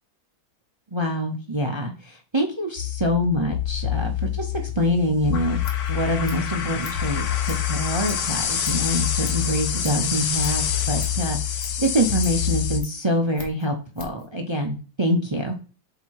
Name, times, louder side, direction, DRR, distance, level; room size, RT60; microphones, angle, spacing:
voice 1, 0.9-5.6 5.9-15.5, equal, 45° right, 2 dB, 0.3 m, -25 dB
sound 1, 2.8-12.8, left 10 dB, 65° left, 1.2 m, -26 dB
Scissors, 5.4-14.3, left 3 dB, 50° left, 1.6 m, -45 dB
7.7 x 2.9 x 4.7 m, 0.35 s
omnidirectional pair, 1.8 m